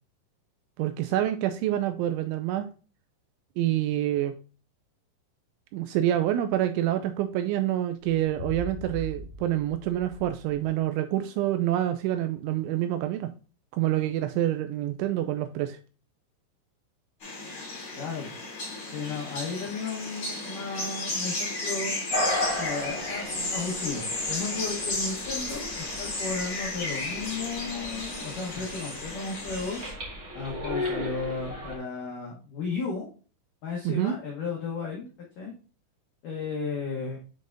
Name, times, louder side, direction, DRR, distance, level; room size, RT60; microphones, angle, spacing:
voice 1, 0.8-2.7 3.6-4.3 5.7-13.3 13.7-15.8 33.9-34.2, right 12 dB, 85° right, 8 dB, 2.7 m, -27 dB
sound 1, 8.0-10.8, equal, 65° left, 2.0 m, -41 dB
sound 2, 17.2-29.9, left 2 dB, 30° left, 3.3 m, -34 dB
voice 2, 17.9-18.3 18.9-21.9 22.6-29.8 30.3-33.1 33.6-35.1 35.4-35.5 36.2-37.2, left 4 dB, 85° left, -2 dB, 1.8 m, -34 dB
sound 3, 22.1-31.8, left 1 dB, 65° right, 0.8 m, -36 dB
7.5 x 5.4 x 2.5 m, 0.36 s
omnidirectional pair, 5.8 m